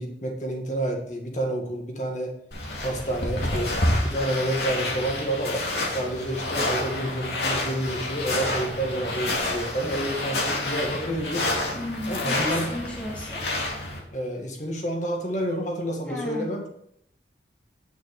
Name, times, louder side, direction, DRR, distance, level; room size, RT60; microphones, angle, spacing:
voice 1, 0.0-2.3 2.8-3.8 4.0-11.5 12.1-12.7 14.1-16.7, right 1 dB, 45° left, 1 dB, 1.9 m, -29 dB
sound 1, 2.5-14.0, left 1 dB, 70° left, 2.3 m, -28 dB
voice 2, 11.7-13.4 16.1-16.5, left 1 dB, 5° left, -4 dB, 1.7 m, -34 dB
9.3 x 6.1 x 4.8 m, 0.71 s
head